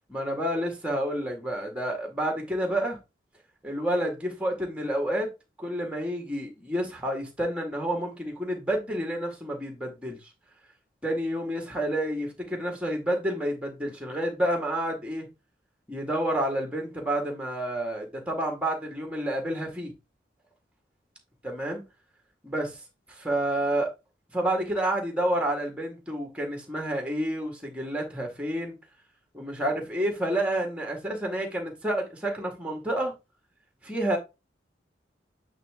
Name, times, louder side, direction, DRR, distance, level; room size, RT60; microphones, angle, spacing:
voice 1, 0.1-3.0 3.6-5.3 5.6-10.2 11.0-15.3 15.9-19.9 21.4-21.8 22.4-22.8 23.1-23.9 24.3-28.8 29.3-33.1 33.8-34.2, right 1 dB, 5° right, 1.8 m, -29 dB
8.4 x 3.3 x 3.6 m
head